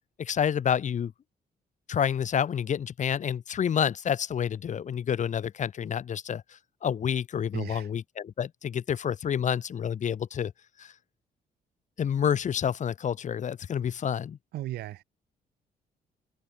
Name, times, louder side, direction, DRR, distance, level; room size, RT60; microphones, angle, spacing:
voice 1, 0.2-1.1 1.9-6.4 6.8-10.5 10.8-10.9 12.0-14.4, left 8 dB, 50° left, 1.3 m, -28 dB
voice 2, 7.5-7.9 14.5-15.0, right 14 dB, 80° right, 1.5 m, -35 dB
cardioid pair, 100°, 16 cm